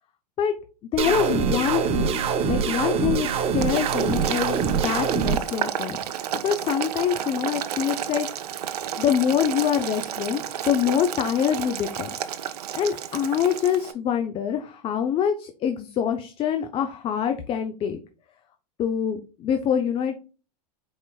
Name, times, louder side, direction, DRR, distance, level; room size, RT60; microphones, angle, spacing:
voice 1, 0.9-2.2 2.4-6.0 6.4-8.3 9.0-12.1 12.7-18.0 18.8-20.1, left 8 dB, 30° left, 7 dB, 0.5 m, -25 dB
sound 1, 1.0-5.4, right 6 dB, 30° right, 0.7 m, -24 dB
Boiling, 3.6-13.9, right 9 dB, 80° right, 0.6 m, -31 dB
4.7 x 4.2 x 2.2 m, 0.35 s
hypercardioid pair, 115°, 20 cm